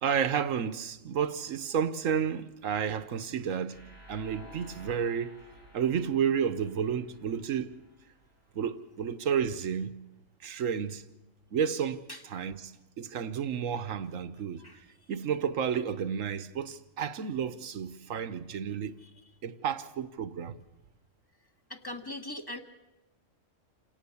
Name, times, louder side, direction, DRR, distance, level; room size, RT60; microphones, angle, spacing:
voice 1, 0.0-3.8 4.1-5.4 5.7-7.8 8.5-9.9 10.4-11.1 11.5-14.6 15.1-19.0 19.4-20.6, right 7 dB, 80° right, 1.4 m, -31 dB
sound 1, 3.7-8.6, equal, 85° left, 7.2 m, -54 dB
voice 2, 21.7-22.6, left 1 dB, 15° left, 1.6 m, -39 dB
28.0 x 18.0 x 7.1 m
omnidirectional pair, 1.4 m